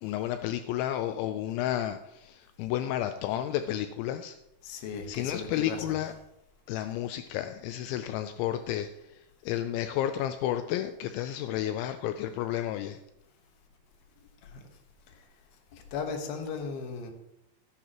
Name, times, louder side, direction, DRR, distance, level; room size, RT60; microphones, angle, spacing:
voice 1, 0.0-4.4 5.1-6.1 6.7-13.0, left 12 dB, 85° left, 9 dB, 2.8 m, -32 dB
voice 2, 4.6-5.8 14.4-14.7 15.1-15.2 15.7-17.1, left 5 dB, 65° left, 4 dB, 2.8 m, -36 dB
15.0 x 10.5 x 3.0 m, 0.86 s
omnidirectional pair, 5.4 m